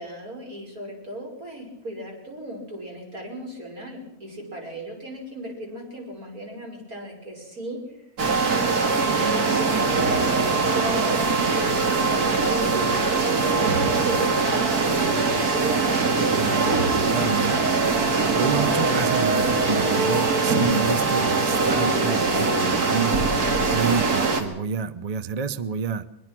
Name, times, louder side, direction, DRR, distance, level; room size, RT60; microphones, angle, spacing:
voice 1, 0.0-8.0 8.4-15.7, right 1 dB, 70° right, 0 dB, 6.2 m, -38 dB
sound 1, 8.2-24.4, right 4 dB, 90° right, 2.6 m, -22 dB
voice 2, 16.3-17.6 18.4-23.2 23.7-26.1, right 5 dB, 35° right, 14 dB, 0.6 m, -28 dB
22.5 x 21.0 x 6.1 m, 0.86 s
omnidirectional pair, 1.6 m